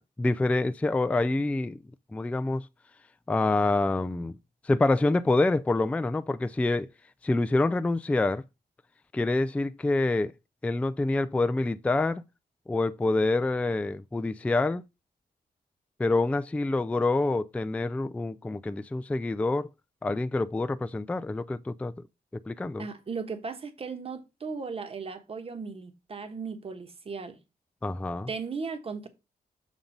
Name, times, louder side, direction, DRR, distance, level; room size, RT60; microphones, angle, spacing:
voice 1, 0.0-1.8 2.1-2.7 3.3-4.4 4.6-6.9 7.2-8.4 9.1-10.3 10.6-12.2 12.7-14.8 16.0-19.7 20.0-21.9 22.3-22.9 27.8-28.3, left 2 dB, 10° left, 0.3 m, -26 dB
voice 2, 22.8-27.4 28.3-29.1, right 5 dB, 35° right, 1.1 m, -36 dB
7.2 x 3.8 x 5.2 m
cardioid pair, 110°, 16 cm